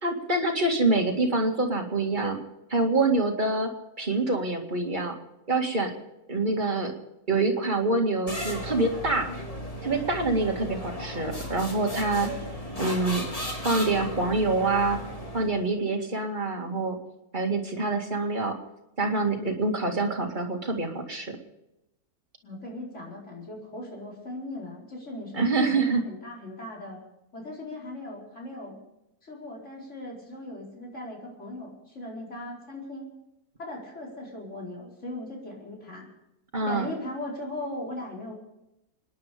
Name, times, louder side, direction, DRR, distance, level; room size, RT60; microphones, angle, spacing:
voice 1, 0.0-2.4 2.7-3.7 4.0-5.1 5.5-5.9 6.3-6.9 7.3-9.3 9.8-12.3 12.8-13.2 13.6-15.0 15.3-17.0 17.3-18.6 19.0-21.4 25.3-26.0 36.5-36.9, right 3 dB, 30° right, 1 dB, 2.3 m, -26 dB
sound 1, 8.3-15.7, equal, 25° left, 2.3 m, -35 dB
voice 2, 22.4-27.0 27.3-28.8 29.2-33.1 33.6-36.1 36.6-38.3, left 1 dB, 50° left, -3 dB, 4.8 m, -38 dB
26.5 x 10.5 x 5.2 m, 0.90 s
omnidirectional pair, 1.6 m